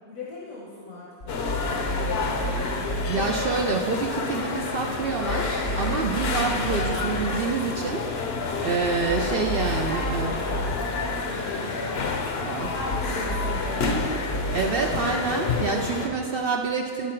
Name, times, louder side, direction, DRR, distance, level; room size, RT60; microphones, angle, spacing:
voice 1, 0.1-2.5 9.1-14.2, left 2 dB, 80° left, -5 dB, 1.5 m, -38 dB
sound 1, 1.2-3.1 5.0-6.9 8.8-10.7 12.6-14.5, right 1 dB, 35° left, 0.7 m, -32 dB
sound 2, 1.3-16.1, left 4 dB, 55° left, 0.8 m, -29 dB
voice 2, 3.1-8.1 8.6-10.3 12.4-12.7 14.5-17.1, right 4 dB, 65° right, 2 dB, 0.6 m, -27 dB
12.0 x 4.7 x 4.5 m, 2.2 s
omnidirectional pair, 1.4 m